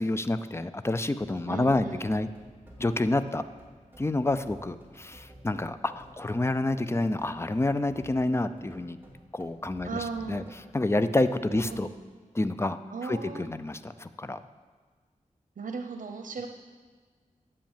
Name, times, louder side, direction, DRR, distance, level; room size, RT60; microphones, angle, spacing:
voice 1, 0.0-2.3 2.8-3.4 4.0-9.0 9.3-10.4 10.7-11.9 12.3-14.4, left 2 dB, 20° left, 11 dB, 0.5 m, -28 dB
sound 1, 1.2-11.9, equal, 15° right, 2.3 m, -53 dB
voice 2, 1.5-2.0 9.8-10.4 11.0-11.1 11.5-11.9 12.9-13.5 15.6-16.5, right 5 dB, 80° right, 5 dB, 0.8 m, -37 dB
10.5 x 8.4 x 7.3 m, 1.5 s
wide cardioid pair, 105°, 14 cm